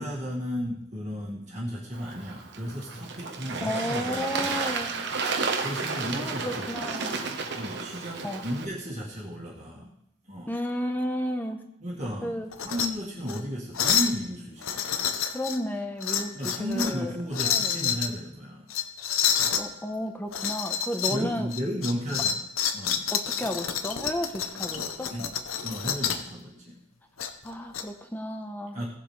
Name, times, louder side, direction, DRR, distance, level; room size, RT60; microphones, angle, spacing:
voice 1, 0.0-4.9 5.4-6.9 7.5-9.9 10.3-10.5 11.8-15.2 16.3-18.7 21.0-22.4 22.7-23.1 23.3-23.5 25.1-25.3 25.6-26.8 28.7-28.9, equal, 35° right, -6 dB, 1.9 m, -34 dB
Bird / Water, 1.9-8.7, right 4 dB, 55° right, 1.1 m, -32 dB
voice 2, 3.6-5.0 6.1-7.2 8.2-8.4 10.5-11.6 12.2-12.5 15.2-17.1 17.4-18.0 19.5-21.5 23.1-25.1 27.4-28.8, equal, 10° left, 5 dB, 0.9 m, -33 dB
sound 1, 12.5-12.9 13.2-13.4 13.7-14.2 14.6-15.6 16.0-17.0 17.3-18.1 18.7-19.6 20.3-21.2 21.5-26.3 27.2-27.8, left 8 dB, 80° left, 0.8 m, -28 dB
17.5 x 7.5 x 3.3 m, 0.78 s
head